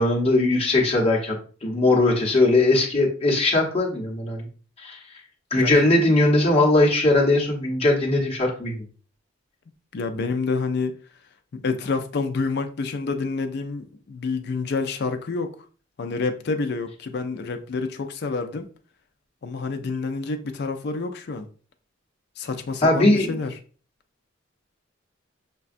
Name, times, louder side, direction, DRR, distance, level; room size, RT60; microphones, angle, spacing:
voice 1, 0.0-1.4 1.6-4.5 4.8-5.0 5.5-8.8 22.8-23.4, left 2 dB, 30° left, 0.9 m, -20 dB
voice 2, 9.9-10.9 11.5-15.5 16.0-18.7 19.4-21.5 22.4-23.5, left 4 dB, 55° left, 0.4 m, -28 dB
5.8 x 2.2 x 2.5 m
head